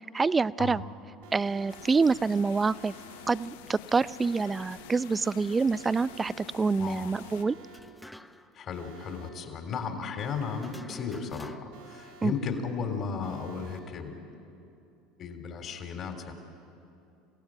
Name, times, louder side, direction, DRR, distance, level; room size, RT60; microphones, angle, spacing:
voice 1, 0.1-0.8 1.3-2.9 3.3-7.6 12.2-12.3, right 4 dB, 20° right, 18 dB, 0.5 m, -26 dB
Alarm, 1.2-1.8 2.7-3.3 4.2-4.8 5.7-6.3 7.2-7.8 8.7-9.3 10.2-10.8 11.7-12.3 13.2-13.8, right 3 dB, 80° right, 4.0 m, -52 dB
sound 1, 1.7-7.4, left 12 dB, 80° left, 0.7 m, -48 dB
voice 2, 6.8-7.1 8.5-14.1 15.2-16.3, left 5 dB, 45° left, 5 dB, 3.6 m, -35 dB
sound 2, 7.7-8.6 8.8-8.9 10.6-11.9, left 1 dB, 5° left, 0.9 m, -47 dB
27.5 x 16.5 x 9.1 m, 2.7 s
hypercardioid pair, 85°, 0 cm